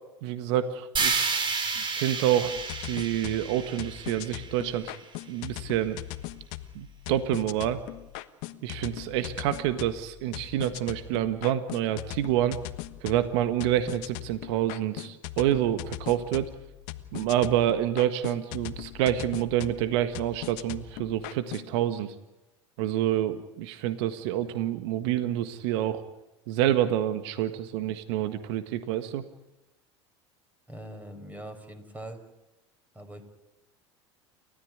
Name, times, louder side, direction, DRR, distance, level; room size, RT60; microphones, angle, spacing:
voice 1, 0.2-1.4 1.9-2.5 2.8-4.9 5.3-6.0 6.7-7.8 8.6-12.6 13.0-16.5 17.1-22.1 22.8-26.0 26.5-29.2, right 12 dB, 70° right, 11 dB, 1.7 m, -27 dB
sound 1, 1.0-5.0, right 4 dB, 35° right, 4.7 m, -31 dB
sound 2, 2.5-21.7, left 16 dB, 65° left, 1.4 m, -40 dB
voice 2, 30.7-32.2 32.9-33.2, right 1 dB, 10° right, 7 dB, 5.3 m, -42 dB
29.5 x 14.5 x 9.6 m, 0.99 s
hypercardioid pair, 80°, 15 cm